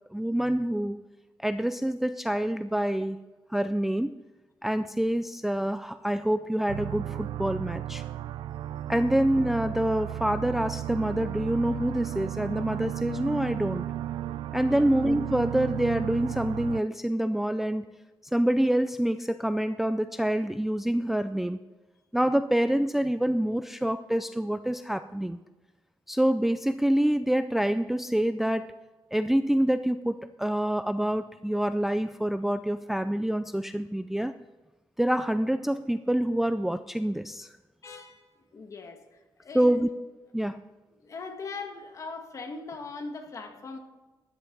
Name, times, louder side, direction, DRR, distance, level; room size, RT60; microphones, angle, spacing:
voice 1, 0.1-1.0 1.4-3.2 3.5-4.2 4.6-8.0 8.9-13.8 14.5-17.9 18.3-21.6 22.1-25.4 26.1-28.8 29.1-34.3 35.0-37.5 39.5-39.9 40.3-40.6, right 1 dB, 5° right, 10 dB, 0.3 m, -26 dB
sound 1, 6.7-16.8, right 12 dB, 85° right, 0.4 m, -34 dB
voice 2, 37.8-38.2 38.5-39.0 39.4-39.9 41.0-43.8, left 4 dB, 40° left, 4 dB, 1.8 m, -40 dB
13.0 x 10.5 x 3.9 m, 1.2 s
cardioid pair, 135°, 8 cm